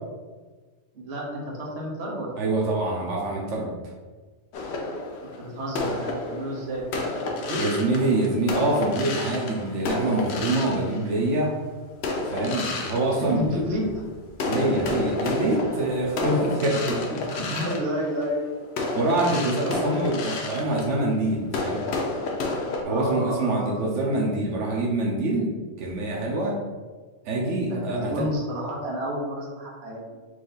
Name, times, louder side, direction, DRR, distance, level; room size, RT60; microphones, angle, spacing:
voice 1, 0.9-2.4 5.2-7.6 13.1-13.8 17.3-18.6 22.8-23.9 27.6-30.0, equal, 65° right, -3 dB, 1.2 m, -31 dB
voice 2, 2.4-3.7 7.6-11.5 12.3-13.6 14.5-17.2 18.9-21.8 22.8-25.5 25.8-26.6 27.2-28.2, right 2 dB, 90° right, -3 dB, 1.1 m, -25 dB
sound 1, 4.5-11.5 12.0-14.0 14.3-22.8, left 3 dB, 70° left, 0.9 m, -31 dB
4.6 x 2.6 x 3.9 m, 1.4 s
omnidirectional pair, 1.2 m